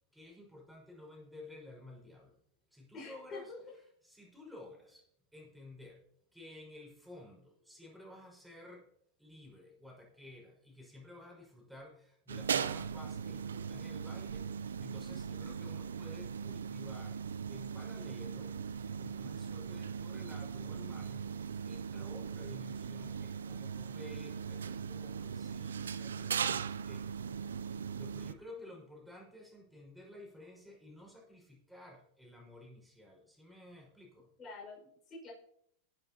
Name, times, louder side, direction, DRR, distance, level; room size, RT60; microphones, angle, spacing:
voice 1, 0.1-2.3 2.7-3.5 4.0-5.0 5.3-6.0 6.3-8.9 9.2-17.2 17.5-27.2 27.6-34.3, left 1 dB, ahead, -2 dB, 5.7 m, -53 dB
voice 2, 2.9-3.6 28.6-28.7 34.4-35.3, left 3 dB, 30° left, -3 dB, 5.9 m, -47 dB
sound 1, 12.3-28.3, right 7 dB, 85° right, 0.6 m, -39 dB
20.0 x 9.1 x 3.0 m, 0.70 s
hypercardioid pair, 105°, 0 cm